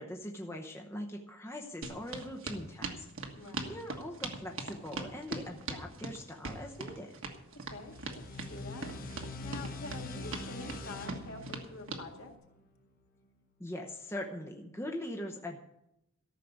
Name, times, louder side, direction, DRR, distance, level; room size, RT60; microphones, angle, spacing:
voice 1, 0.0-3.0 3.7-7.1 13.6-15.6, left 1 dB, 10° left, 1 dB, 0.9 m, -41 dB
sound 1, 1.8-12.1, right 3 dB, 60° right, 1.5 m, -40 dB
voice 2, 3.3-3.8 7.5-8.9 9.4-12.3, left 3 dB, 65° left, 2 dB, 2.0 m, -46 dB
sound 2, 7.6-13.0, left 2 dB, 40° left, 1.3 m, -44 dB
13.5 x 6.7 x 8.2 m, 0.84 s
head